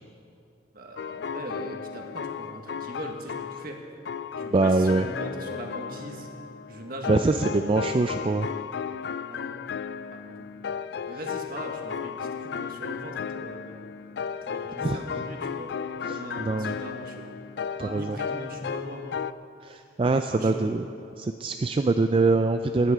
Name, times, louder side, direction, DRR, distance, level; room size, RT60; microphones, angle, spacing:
voice 1, 0.7-3.8 4.4-6.3 6.7-7.5 9.3-9.5 10.1-10.5 11.1-13.8 14.3-15.7 16.1-17.3 17.8-19.1 20.3-20.6, right 1 dB, 50° right, 2 dB, 1.6 m, -40 dB
sound 1, 1.0-3.7 4.0-19.3, left 7 dB, 65° left, 0.3 m, -35 dB
voice 2, 4.5-5.0 7.1-8.5 14.8-15.0 16.4-16.8 17.8-18.2 19.6-20.8 21.2-22.9, right 3 dB, 30° right, 7 dB, 0.3 m, -23 dB
16.0 x 11.0 x 5.0 m, 2.6 s
head